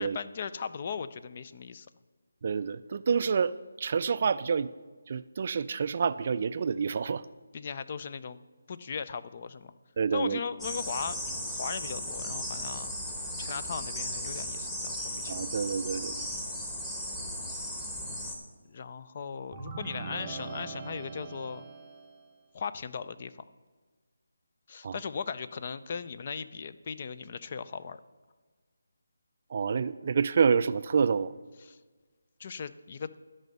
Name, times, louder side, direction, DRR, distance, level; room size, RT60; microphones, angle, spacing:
voice 1, 0.0-1.9 7.5-8.4 8.7-9.7 10.1-12.9 13.4-15.3 18.1-18.3 18.7-21.6 22.5-23.3 24.7-28.0 31.6-31.8 32.4-33.2, left 6 dB, 40° left, 13 dB, 0.4 m, -38 dB
voice 2, 2.4-3.5 3.8-4.7 5.1-7.2 10.0-10.4 15.3-16.3 24.8-24.9 29.5-31.3, right 6 dB, 45° right, 15 dB, 0.3 m, -28 dB
sound 1, 10.6-18.4, equal, 10° left, 1.2 m, -36 dB
sound 2, 19.5-22.3, right 4 dB, 15° right, 0.9 m, -41 dB
12.0 x 5.4 x 6.6 m, 1.4 s
figure-of-eight pair, 160°, 0 cm